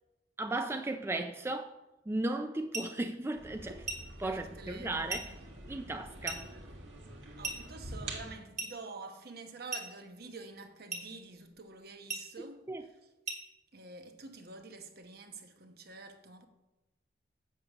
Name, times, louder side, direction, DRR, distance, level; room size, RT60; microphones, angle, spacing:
voice 1, 0.4-1.7 2.1-3.9 4.2-5.2 5.7-6.5 12.7-12.9, right 2 dB, 15° right, 0.4 m, -35 dB
sound 1, 2.7-3.0 3.9-4.1 5.1-5.3 6.3-6.5 7.4-7.7 8.6-8.8 9.7-10.0 10.9-11.1 12.1-12.3 13.3-13.5, right 3 dB, 40° right, 2.1 m, -38 dB
sound 2, 3.3-8.3, right 2 dB, 85° right, 1.7 m, -46 dB
voice 2, 4.2-5.2 7.3-13.1 13.7-16.5, right 3 dB, 55° right, 1.0 m, -48 dB
8.0 x 7.2 x 6.0 m
head